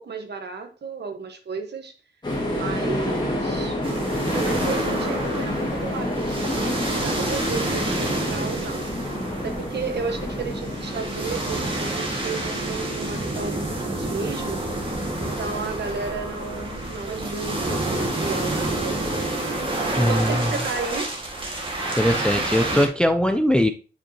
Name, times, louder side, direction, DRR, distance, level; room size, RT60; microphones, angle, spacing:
voice 1, 0.0-1.9 2.5-3.8 4.4-6.8 7.0-14.6 15.2-19.4 20.0-21.1, right 5 dB, 60° right, 6 dB, 1.3 m, -33 dB
sound 1, 2.2-20.8, left 1 dB, 20° left, 1.9 m, -31 dB
sound 2, 3.8-22.9, right 2 dB, 25° right, 1.8 m, -29 dB
voice 2, 20.0-20.5 22.0-23.7, equal, 5° left, 8 dB, 0.4 m, -20 dB
8.9 x 5.2 x 2.9 m, 0.33 s
wide cardioid pair, 155°, 20 cm